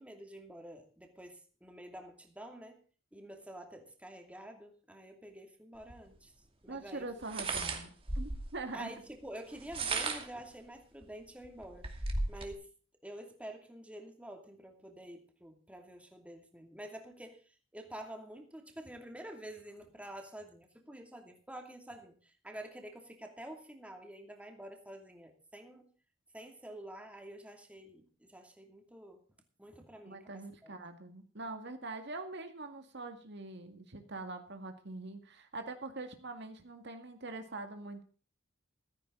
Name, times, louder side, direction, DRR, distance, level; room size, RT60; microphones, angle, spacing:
voice 1, 0.0-2.8 3.1-6.3 6.6-7.1 8.7-11.9 12.3-12.7 13.0-25.9 26.3-29.2 29.6-30.7, right 1 dB, 5° right, 3 dB, 2.6 m, -48 dB
sound 1, 5.9-6.0 7.2-8.6 9.5-10.4 11.0-11.1 11.4-12.5, right 3 dB, 30° right, 2.5 m, -35 dB
voice 2, 6.7-8.9 30.1-38.0, right 2 dB, 65° right, 6 dB, 2.1 m, -43 dB
15.0 x 14.5 x 3.9 m, 0.38 s
head